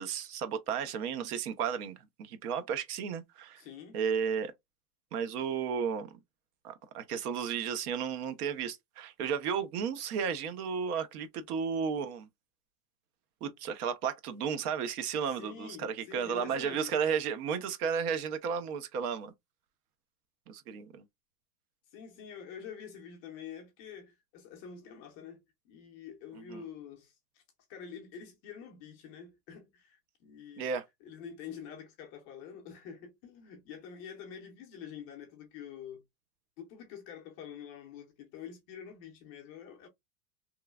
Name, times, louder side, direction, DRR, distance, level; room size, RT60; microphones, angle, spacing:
voice 1, 0.0-3.6 3.9-4.5 5.1-6.2 6.6-12.3 13.4-19.3 20.5-21.0 26.4-26.6 30.6-30.9, right 7 dB, 65° right, 0.7 m, -33 dB
voice 2, 3.6-4.0 15.3-16.9 21.9-27.4 27.7-30.7 31.0-36.0 36.6-39.9, left 7 dB, 25° left, 0.4 m, -47 dB
3.0 x 2.4 x 2.2 m
supercardioid pair, 145°, 49 cm